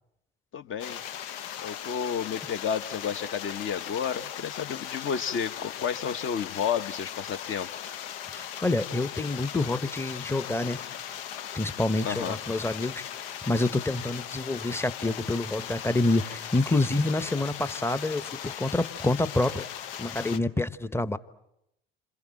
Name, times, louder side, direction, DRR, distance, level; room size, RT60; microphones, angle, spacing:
voice 1, 0.5-1.0 1.6-7.7 12.0-12.4, left 7 dB, 40° left, 9 dB, 1.3 m, -31 dB
sound 1, 0.8-20.4, left 10 dB, 70° left, 1.0 m, -38 dB
voice 2, 8.3-10.8 11.5-19.7 20.0-21.2, left 2 dB, 10° left, 15 dB, 1.0 m, -27 dB
28.5 x 26.5 x 7.6 m, 0.84 s
hypercardioid pair, 65°, 30 cm